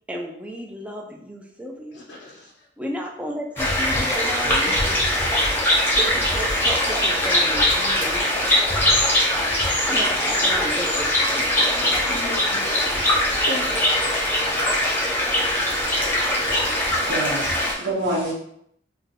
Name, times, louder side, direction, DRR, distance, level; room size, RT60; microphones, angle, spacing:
voice 1, 0.0-2.0 2.8-4.7 6.0-8.7 9.8-12.5, equal, 5° right, 1 dB, 0.4 m, -33 dB
voice 2, 1.9-2.5 4.6-5.0 11.6-12.8 13.5-13.8 15.2-15.3, left 1 dB, 65° left, -2 dB, 0.5 m, -37 dB
sound 1, 3.6-17.7, left 1 dB, 10° left, 0.8 m, -21 dB
voice 3, 16.0-16.4 16.8-18.3, right 1 dB, 85° right, -5 dB, 0.9 m, -28 dB
2.5 x 2.2 x 4.0 m, 0.72 s
head